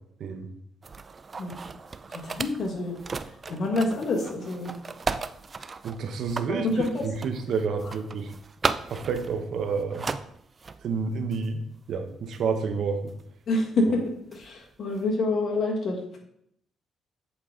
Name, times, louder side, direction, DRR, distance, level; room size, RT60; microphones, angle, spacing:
sound 1, 0.8-10.9 11.3-11.5 12.3-12.4 13.1-13.2 14.3-14.6, right 4 dB, 35° right, 0.3 m, -36 dB
voice 1, 2.1-3.0 3.5-4.7 6.5-7.0 7.8-7.9 13.5-14.0 14.3-16.0, left 2 dB, 55° left, 1 dB, 1.6 m, -27 dB
voice 2, 5.8-8.3 8.9-10.1 10.8-11.6 11.9-13.1, right 5 dB, 70° right, 7 dB, 0.8 m, -29 dB
8.1 x 3.9 x 3.7 m, 0.70 s
cardioid pair, 90°, 0 cm